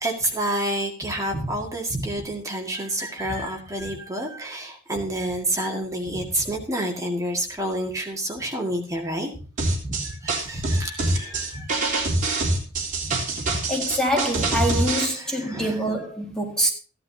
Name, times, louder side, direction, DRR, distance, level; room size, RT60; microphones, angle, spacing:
voice 1, 0.0-9.3 9.8-11.7 13.0-13.6 15.0-15.8, right 1 dB, 15° right, 2.0 m, -29 dB
sound 1, 9.6-15.1, right 2 dB, 35° right, 3.5 m, -24 dB
voice 2, 13.7-16.7, equal, 5° left, 1.9 m, -25 dB
15.0 x 11.5 x 2.8 m
head